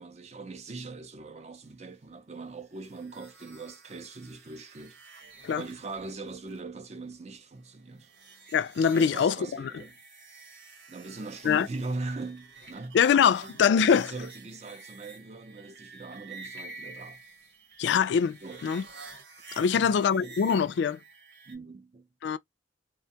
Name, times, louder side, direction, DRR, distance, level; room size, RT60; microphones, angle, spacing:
voice 1, 0.0-5.0 5.3-8.1 8.9-10.0 10.4-10.5 10.9-13.0 13.4-17.2 18.4-18.6 19.7-20.3 21.5-22.1, right 3 dB, 35° right, 0.5 m, -41 dB
sound 1, 2.8-21.5, right 3 dB, 70° right, 1.1 m, -50 dB
voice 2, 8.5-9.7 11.4-11.7 12.9-14.1 17.8-18.8 19.6-21.0 22.2-22.4, left 7 dB, 70° left, 0.3 m, -23 dB
2.5 x 2.2 x 2.7 m
head